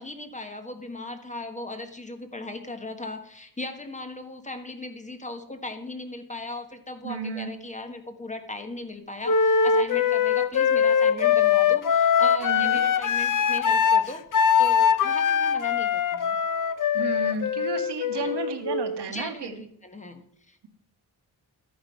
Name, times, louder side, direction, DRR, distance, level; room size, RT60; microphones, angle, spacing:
voice 1, 0.0-16.4 18.1-18.4 19.1-20.6, left 2 dB, 20° left, 6 dB, 1.2 m, -38 dB
voice 2, 7.0-7.5 12.4-12.8 16.9-19.6, right 5 dB, 90° right, 6 dB, 1.6 m, -33 dB
Wind instrument woodwind instrument, 9.2-19.1, left 7 dB, 50° left, 0.8 m, -22 dB
13.0 x 8.8 x 5.5 m, 0.69 s
wide cardioid pair, 150°, 40 cm